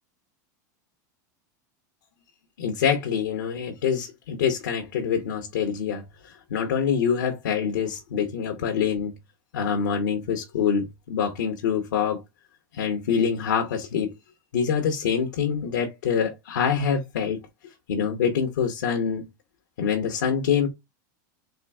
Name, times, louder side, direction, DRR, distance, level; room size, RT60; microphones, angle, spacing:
voice 1, 2.6-9.2 9.5-12.2 12.7-14.1 14.5-17.4 17.9-19.2 19.8-20.7, left 7 dB, 90° left, 0.9 m, -25 dB
3.7 x 2.6 x 3.4 m
supercardioid pair, 120°, 10 cm